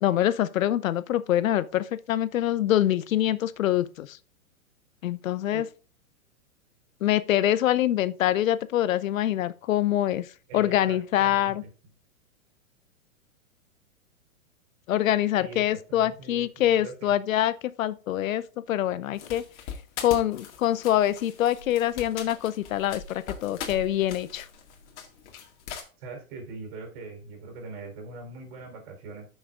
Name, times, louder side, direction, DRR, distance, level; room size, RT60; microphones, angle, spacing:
voice 1, 0.0-4.2 5.0-5.7 7.0-10.3 10.5-11.6 14.9-18.4 18.7-19.4 20.0-24.5, left 12 dB, 70° left, 0.6 m, -25 dB
voice 2, 10.5-11.5 15.4-17.1 26.0-29.3, right 3 dB, 50° right, 4.0 m, -42 dB
sound 1, 19.1-25.8, left 6 dB, 55° left, 2.0 m, -41 dB
13.5 x 6.4 x 2.5 m
hypercardioid pair, 120°, 41 cm